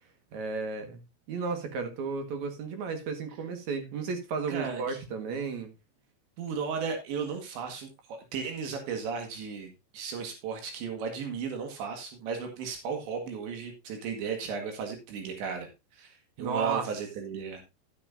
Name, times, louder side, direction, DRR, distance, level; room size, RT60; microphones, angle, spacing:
voice 1, 0.3-1.0 1.3-5.7 16.4-16.9, right 5 dB, 55° right, 2.4 m, -33 dB
voice 2, 4.5-5.0 6.4-17.6, right 6 dB, 80° right, 4.1 m, -35 dB
12.0 x 9.9 x 2.7 m
omnidirectional pair, 5.0 m